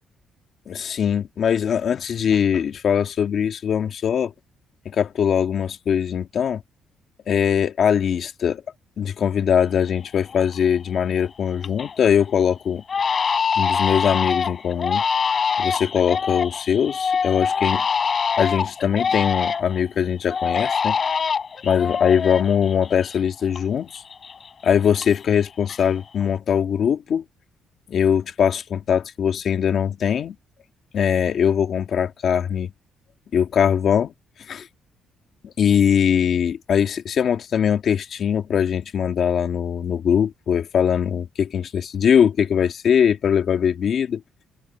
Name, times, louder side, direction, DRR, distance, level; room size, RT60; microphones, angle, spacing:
voice 1, 0.7-4.3 4.9-6.6 7.3-8.6 9.0-12.8 13.6-15.0 15.6-17.8 18.4-21.0 21.6-24.0 24.6-27.2 27.9-30.4 30.9-32.7 33.3-34.1 34.5-34.7 35.4-44.2, left 8 dB, 50° left, 2.0 m, -21 dB
Crying sobbing, 9.7-9.8 10.3-10.7 11.1-12.0 12.3-12.4 12.9-19.8 20.3-23.6 23.9-25.4 25.7-26.2, left 6 dB, 35° left, 5.0 m, -25 dB
cardioid pair, 140°, 0 cm